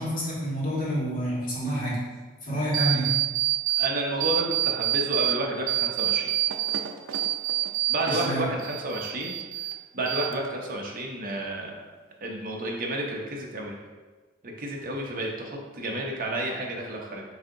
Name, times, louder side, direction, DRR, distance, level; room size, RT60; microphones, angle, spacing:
voice 1, 0.0-2.0 2.4-3.2 8.1-8.5, equal, 45° left, -6 dB, 1.4 m, -28 dB
sound 1, 2.7-3.9 4.2-5.3 5.7-8.3 8.6-9.7 10.1-10.7, right 14 dB, 75° right, 0.4 m, -26 dB
voice 2, 3.8-6.3 7.9-9.4 9.9-11.7 12.2-13.8 14.6-17.2, right 1 dB, 45° right, -1 dB, 0.7 m, -31 dB
7.2 x 2.7 x 2.6 m, 1.3 s
head